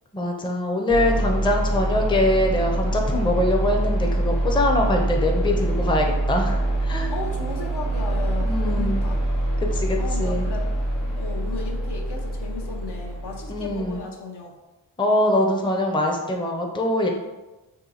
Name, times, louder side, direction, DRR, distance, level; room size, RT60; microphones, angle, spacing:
voice 1, 0.1-7.1 8.4-9.0 9.6-10.5 13.5-14.0 15.0-17.1, left 1 dB, 10° left, 1 dB, 0.5 m, -23 dB
sound 1, 0.9-14.0, right 1 dB, 80° left, 1.3 m, -25 dB
voice 2, 7.1-9.2 10.0-10.7 11.1-14.5, left 3 dB, 60° left, 1 dB, 0.7 m, -35 dB
2.8 x 2.6 x 4.0 m, 1.1 s
cardioid pair, 40°, 45 cm